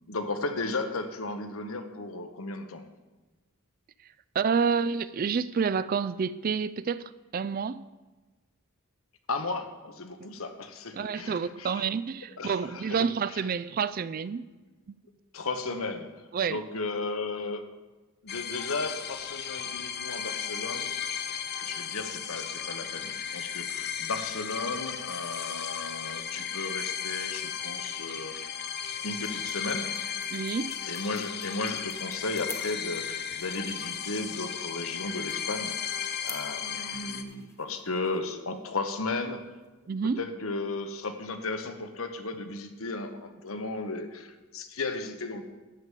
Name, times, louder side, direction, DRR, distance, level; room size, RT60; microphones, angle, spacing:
voice 1, 0.1-2.9 9.3-11.9 12.4-13.4 15.3-16.1 16.5-17.7 18.2-20.9 21.6-28.4 29.0-30.0 30.9-39.5 40.2-45.5, left 3 dB, 75° left, 1.1 m, -35 dB
voice 2, 4.3-7.8 10.9-14.4 16.3-16.6 30.3-30.8 39.9-40.2, right 6 dB, 40° right, 0.3 m, -29 dB
sound 1, 18.3-37.2, left 8 dB, 50° left, 0.6 m, -35 dB
sound 2, 28.5-40.0, left 4 dB, 15° left, 0.9 m, -51 dB
12.5 x 4.8 x 8.3 m
head